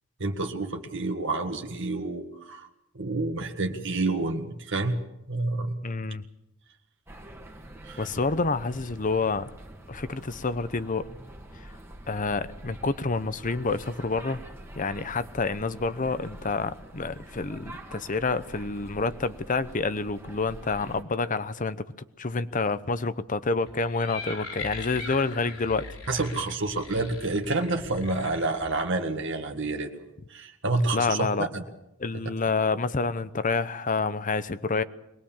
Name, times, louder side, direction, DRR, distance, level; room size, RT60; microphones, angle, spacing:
voice 1, 0.2-2.7 3.0-5.0 5.3-5.8 7.8-8.1 26.1-30.0 30.3-31.6, right 2 dB, 60° right, 4 dB, 1.7 m, -29 dB
voice 2, 5.8-6.2 8.0-9.5 9.9-11.1 12.1-14.4 14.7-21.8 22.2-25.9 30.9-31.5 32.0-34.8, left 4 dB, 40° left, 14 dB, 0.8 m, -28 dB
sound 1, 7.1-21.0, right 1 dB, 10° right, 1.9 m, -45 dB
sound 2, 23.7-28.8, left 3 dB, 75° left, 3.8 m, -40 dB
22.5 x 20.0 x 7.3 m, 0.89 s
head